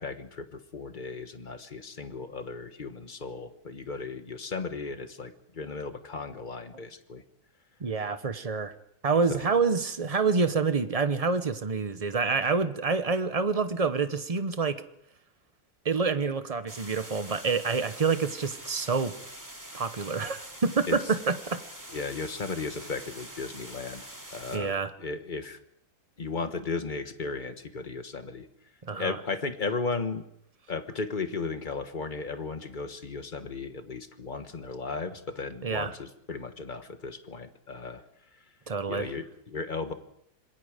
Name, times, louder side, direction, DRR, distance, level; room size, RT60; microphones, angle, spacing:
voice 1, 0.0-7.2 9.3-9.4 20.9-21.0 21.9-24.7 25.0-25.6 26.2-28.5 28.9-30.2 30.7-38.0 38.8-39.9, left 4 dB, 30° left, 9 dB, 1.2 m, -35 dB
voice 2, 7.8-8.7 9.0-14.8 15.8-19.2 19.7-21.6 24.5-24.9 28.8-29.2 35.6-35.9 38.7-39.1, right 4 dB, 35° right, 10 dB, 0.6 m, -27 dB
sound 1, 16.7-24.6, right 1 dB, 10° right, 2.6 m, -45 dB
27.0 x 21.0 x 5.1 m, 0.72 s
omnidirectional pair, 2.1 m